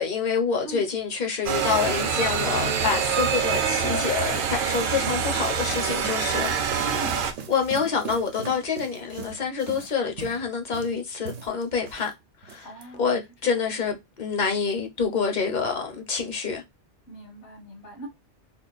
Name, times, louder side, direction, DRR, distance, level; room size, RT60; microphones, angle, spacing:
voice 1, 0.0-6.6 7.5-12.1 12.4-12.7 13.0-16.6, left 5 dB, 45° left, 0.7 m, -27 dB
sound 1, 1.4-7.3, right 7 dB, 60° right, 0.6 m, -25 dB
sound 2, 2.6-12.1 12.4-12.8, right 6 dB, 90° right, 0.9 m, -41 dB
voice 2, 6.8-7.3 12.6-13.6 17.1-18.1, right 2 dB, 75° left, 1.8 m, -41 dB
3.7 x 2.2 x 2.3 m
omnidirectional pair, 1.2 m